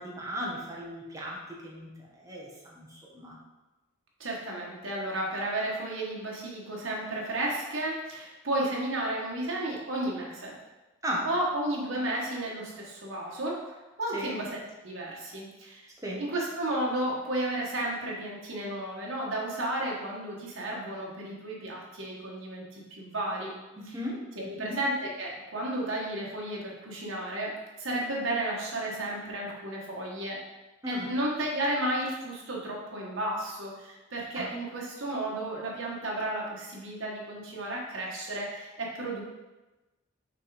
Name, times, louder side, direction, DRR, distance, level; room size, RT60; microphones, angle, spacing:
voice 1, 0.0-1.9 2.2-3.4 11.0-11.3 14.1-14.4 16.0-16.2 23.7-24.8 30.8-31.1 34.3-34.5, equal, 15° right, -4 dB, 1.3 m, -36 dB
voice 2, 4.2-10.6 11.2-13.7 14.0-14.6 14.8-15.8 16.2-23.5 24.3-30.4 30.9-39.2, right 1 dB, 75° right, -3 dB, 1.5 m, -33 dB
5.8 x 3.6 x 4.9 m, 1.1 s
head